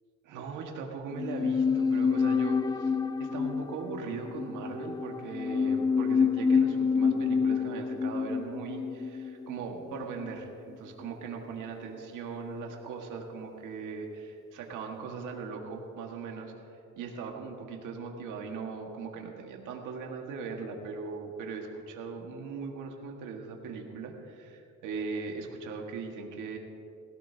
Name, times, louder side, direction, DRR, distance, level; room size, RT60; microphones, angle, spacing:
voice 1, 0.2-2.9 3.2-16.5 17.0-26.6, right 5 dB, 90° right, 1 dB, 1.8 m, -39 dB
sound 1, 1.1-10.5 10.7-10.8, left 5 dB, 15° left, 0.3 m, -28 dB
20.5 x 16.5 x 2.9 m, 2.7 s
cardioid pair, 90°, 30 cm